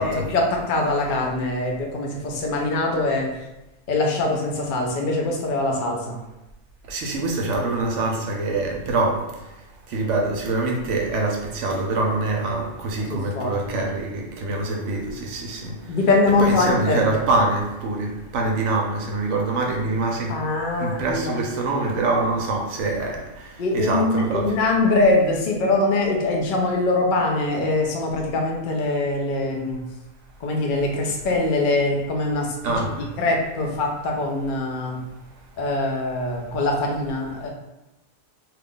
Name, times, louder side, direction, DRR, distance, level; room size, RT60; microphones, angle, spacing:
voice 1, 0.0-3.3 3.9-6.2 13.1-13.8 15.9-17.1 20.3-21.4 23.6-29.8 30.4-35.0 35.6-37.5, left 2 dB, 90° left, 0 dB, 0.4 m, -23 dB
voice 2, 6.9-9.2 9.9-15.7 16.4-20.4 20.8-23.2 23.7-24.6 32.6-33.0, right 2 dB, 65° right, 0 dB, 0.8 m, -24 dB
2.8 x 2.4 x 3.6 m, 0.98 s
omnidirectional pair, 1.6 m